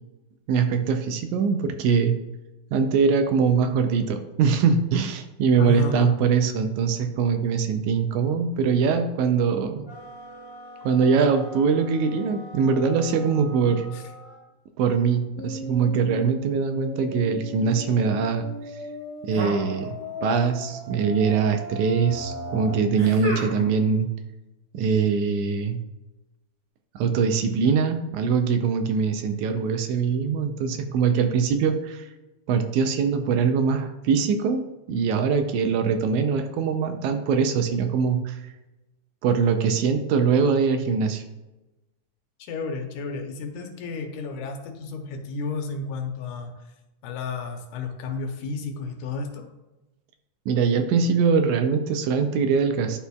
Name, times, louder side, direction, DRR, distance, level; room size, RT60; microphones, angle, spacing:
voice 1, 0.5-2.1 2.7-9.9 10.8-14.0 14.8-18.5 19.2-19.9 20.2-24.1 24.7-25.8 27.0-32.1 32.5-34.6 34.9-38.4 39.2-41.2 50.5-53.0, right 6 dB, 80° right, 7 dB, 1.9 m, -22 dB
voice 2, 5.6-6.1 13.9-14.0 42.4-46.5 47.0-49.5, left 3 dB, 80° left, 4 dB, 2.3 m, -32 dB
sound 1, 9.8-14.5, left 2 dB, 30° right, 1.9 m, -44 dB
sound 2, 15.4-22.8, left 1 dB, 65° left, 2.3 m, -36 dB
sound 3, 19.3-20.3 20.6-21.3 23.0-23.9, right 1 dB, 65° right, 2.6 m, -34 dB
11.0 x 4.2 x 2.3 m, 1.0 s
omnidirectional pair, 3.6 m